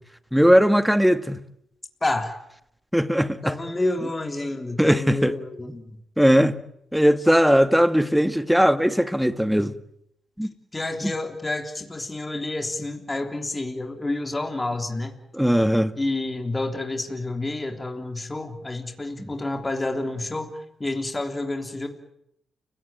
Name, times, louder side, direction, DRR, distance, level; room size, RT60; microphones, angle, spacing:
voice 1, 0.3-1.4 2.9-3.5 4.8-5.3 6.2-6.6 6.9-9.7 10.4-10.5 15.3-15.9, equal, ahead, 1.6 m, -19 dB
voice 2, 2.0-2.4 3.4-6.0 10.7-15.2 16.0-21.9, left 2 dB, 25° left, 3.4 m, -29 dB
30.0 x 17.0 x 9.2 m
supercardioid pair, 60°, 0 cm